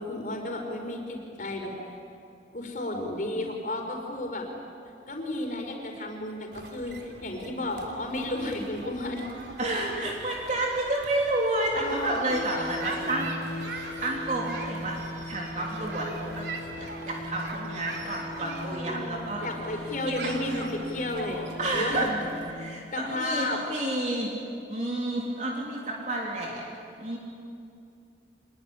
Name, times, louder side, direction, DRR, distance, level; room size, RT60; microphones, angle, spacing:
voice 1, 0.0-1.7 2.5-4.5 5.1-9.3 11.7-12.6 18.4-22.2 22.9-23.6, left 1 dB, 45° left, 2 dB, 4.8 m, -33 dB
sound 1, 6.5-22.5, right 3 dB, 75° right, 3.3 m, -42 dB
voice 2, 9.6-13.3 13.8-15.0 15.3-16.4 16.8-19.4 21.6-22.1 22.5-24.3 24.7-26.6 27.0-27.2, right 1 dB, 40° right, -2 dB, 3.5 m, -30 dB
sound 2, 12.3-22.6, left 1 dB, 85° left, 4.9 m, -39 dB
26.0 x 21.5 x 9.9 m, 2.5 s
head